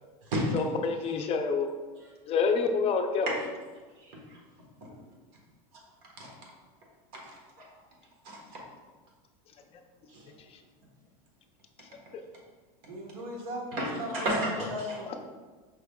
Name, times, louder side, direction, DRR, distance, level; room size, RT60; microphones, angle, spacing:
voice 1, 0.5-1.7 2.3-3.3 12.1-12.2 15.1-15.2, left 5 dB, 35° left, 5 dB, 0.5 m, -27 dB
voice 2, 4.0-4.4 6.2-6.3 7.2-7.7 8.2-8.6 10.1-10.2 13.8-15.0, equal, 60° right, -2 dB, 1.4 m, -33 dB
voice 3, 12.8-15.2, equal, 75° right, -1 dB, 1.2 m, -38 dB
5.3 x 3.3 x 2.3 m, 1.3 s
supercardioid pair, 120°, 18 cm